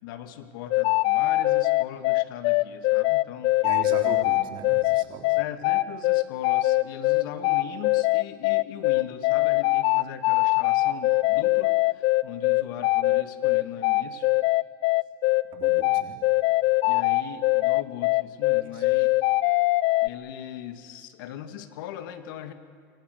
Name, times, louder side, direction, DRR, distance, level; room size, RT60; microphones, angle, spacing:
voice 1, 0.0-3.6 5.4-14.3 16.8-19.1 20.0-22.5, left 10 dB, 70° left, 9 dB, 2.1 m, -39 dB
sound 1, 0.7-20.1, left 20 dB, 50° left, 0.7 m, -22 dB
voice 2, 3.6-5.4 15.5-16.2 18.7-18.8, right 7 dB, 45° right, 3 dB, 3.9 m, -38 dB
27.0 x 24.5 x 6.8 m, 2.1 s
supercardioid pair, 125°, 12 cm